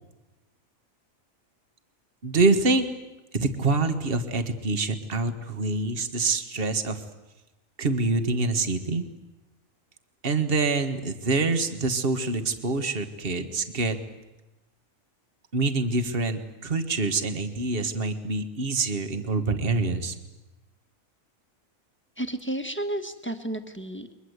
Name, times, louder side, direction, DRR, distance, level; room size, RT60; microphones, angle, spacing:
voice 1, 2.2-2.9 3.3-7.0 7.8-9.1 10.2-14.0 15.5-20.2, right 3 dB, 45° right, 7 dB, 1.8 m, -26 dB
voice 2, 22.2-24.1, right 1 dB, 10° left, 7 dB, 1.5 m, -32 dB
30.0 x 23.0 x 8.2 m, 1.0 s
omnidirectional pair, 1.4 m